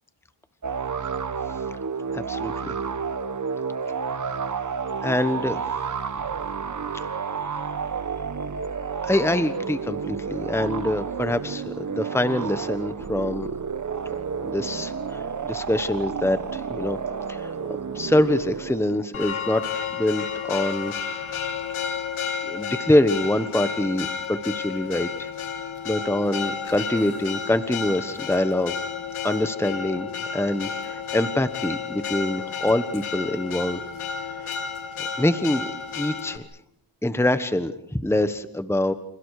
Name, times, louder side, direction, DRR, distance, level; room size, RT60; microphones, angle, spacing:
sound 1, 0.6-19.0, right 6 dB, 35° right, 1.3 m, -31 dB
voice 1, 2.1-2.7 5.0-5.7 9.0-13.5 14.4-17.0 17.3-17.5 17.9-19.6 19.9-20.9 22.4-25.3 25.8-28.8 29.2-30.1 30.3-33.8 35.2-35.7 35.9-36.4 37.0-38.9, left 1 dB, 5° left, 11 dB, 1.3 m, -25 dB
Church bell, 19.1-36.4, left 6 dB, 80° left, 2.6 m, -31 dB
29.5 x 28.5 x 5.0 m, 0.71 s
cardioid pair, 95°, 49 cm